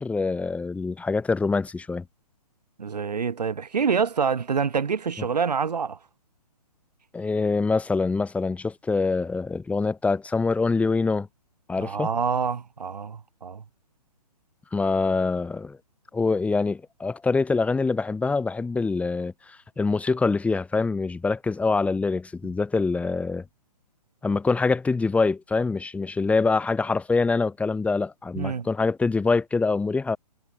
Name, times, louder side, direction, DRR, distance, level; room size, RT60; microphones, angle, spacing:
voice 1, 0.0-2.0 7.1-11.3 11.7-12.1 14.7-15.8 16.1-23.4 24.2-30.2, left 4 dB, 5° left, 3.5 m, -25 dB
voice 2, 2.8-6.0 11.8-13.6 28.4-28.7, right 6 dB, 75° right, 2.1 m, -26 dB
hypercardioid pair, 135°, 21 cm